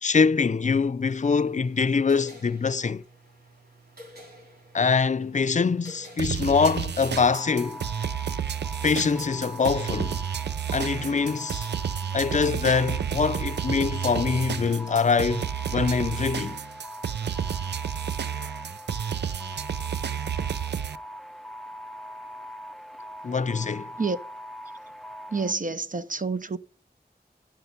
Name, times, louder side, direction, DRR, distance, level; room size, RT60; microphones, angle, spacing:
voice 1, 0.0-3.0 4.7-7.8 8.8-10.2 10.7-11.7 12.1-16.6 23.2-23.9, left 5 dB, 45° left, 0.5 m, -24 dB
sound 1, 1.1-7.0, equal, 65° right, 3.7 m, -50 dB
sound 2, 6.2-21.0, right 8 dB, 85° right, 0.4 m, -31 dB
sound 3, 7.2-25.5, equal, ahead, 0.6 m, -41 dB
voice 2, 25.3-26.6, right 4 dB, 50° right, 0.9 m, -28 dB
10.5 x 5.7 x 8.0 m
wide cardioid pair, 50°, 17 cm